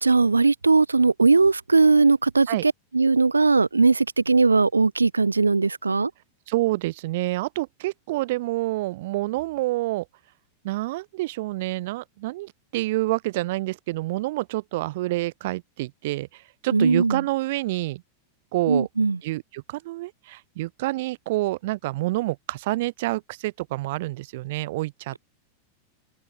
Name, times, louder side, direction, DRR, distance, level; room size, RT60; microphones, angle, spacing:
voice 1, 0.0-6.1 16.7-17.2 18.7-19.2, right 4 dB, 80° right, 1.9 m, -19 dB
voice 2, 6.5-10.1 10.6-18.0 18.5-18.9 19.2-25.1, right 19 dB, 50° right, 4.0 m, -28 dB
open air
figure-of-eight pair, 90°, 0 cm